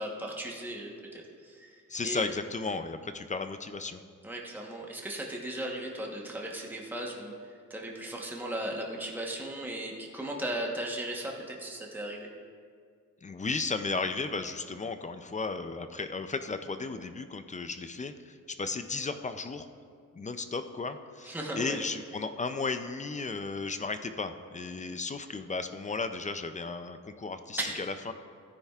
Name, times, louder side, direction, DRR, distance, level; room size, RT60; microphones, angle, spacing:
voice 1, 0.0-1.7 2.0-2.2 4.2-7.3 7.7-12.3 21.2-21.8 27.6-27.8, right 1 dB, 5° right, -1 dB, 1.0 m, -36 dB
voice 2, 1.9-4.0 13.2-19.7 20.2-28.1, left 4 dB, 25° left, 9 dB, 0.4 m, -35 dB
16.5 x 9.8 x 2.4 m, 2.1 s
wide cardioid pair, 165°, 32 cm